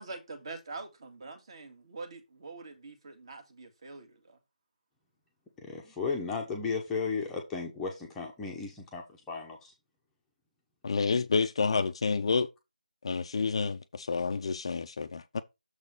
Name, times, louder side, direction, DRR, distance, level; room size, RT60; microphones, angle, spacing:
voice 1, 0.0-4.4, right 3 dB, 35° right, 1.8 m, -44 dB
voice 2, 5.6-9.7, left 4 dB, 5° left, 0.8 m, -35 dB
voice 3, 10.8-12.5 13.0-15.4, left 4 dB, 40° left, 0.5 m, -29 dB
6.8 x 4.0 x 5.1 m
figure-of-eight pair, 160°, 5 cm